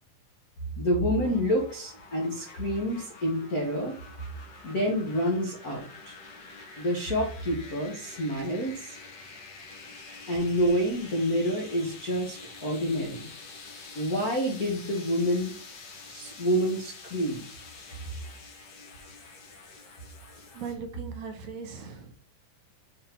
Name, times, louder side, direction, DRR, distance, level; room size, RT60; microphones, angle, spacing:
voice 1, 0.8-3.9 4.6-6.1 6.8-8.9 10.3-13.3 13.9-15.5 16.1-17.4, equal, 60° left, 0 dB, 0.9 m, -28 dB
sound 1, 1.2-20.7, left 4 dB, 85° left, 0.9 m, -47 dB
voice 2, 20.5-22.1, right 5 dB, 65° right, 4 dB, 2.3 m, -39 dB
6.4 x 3.8 x 4.5 m, 0.44 s
omnidirectional pair, 3.9 m